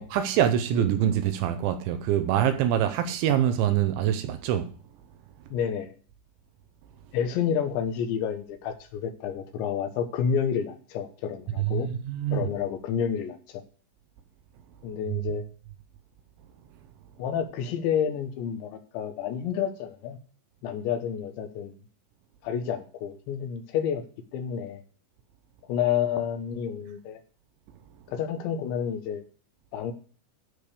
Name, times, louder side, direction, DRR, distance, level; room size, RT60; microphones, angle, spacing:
voice 1, 0.0-4.7 11.6-12.5 15.1-15.2, right 10 dB, 80° right, 3.0 m, -25 dB
voice 2, 5.5-6.0 7.1-11.9 12.3-13.6 14.8-15.4 17.2-20.2 20.6-21.8 22.4-24.1 24.3-24.8 25.7-27.2 28.1-29.2 29.7-29.9, left 8 dB, 75° left, 3.1 m, -29 dB
13.0 x 5.2 x 6.5 m
omnidirectional pair, 5.7 m